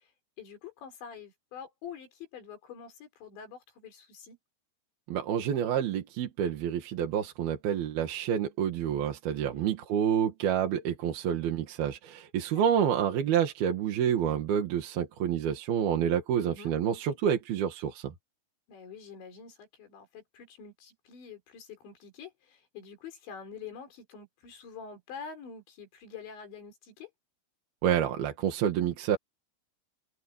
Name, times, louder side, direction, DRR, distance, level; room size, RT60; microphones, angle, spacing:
voice 1, 0.4-4.4 9.3-9.8 12.5-12.6 16.4-16.7 18.7-27.1, left 6 dB, 90° left, 6.8 m, -46 dB
voice 2, 5.1-18.1 27.8-29.2, right 9 dB, 65° right, 3.5 m, -28 dB
omnidirectional pair, 5.0 m